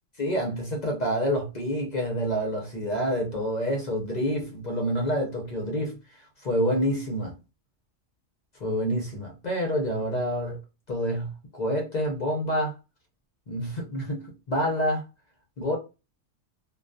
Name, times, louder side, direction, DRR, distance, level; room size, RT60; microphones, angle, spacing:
voice 1, 0.2-7.3 8.6-10.6 10.9-12.7 13.5-15.0 15.6-15.8, equal, 50° left, 0.5 m, -28 dB
2.2 x 2.2 x 2.5 m
omnidirectional pair, 1.3 m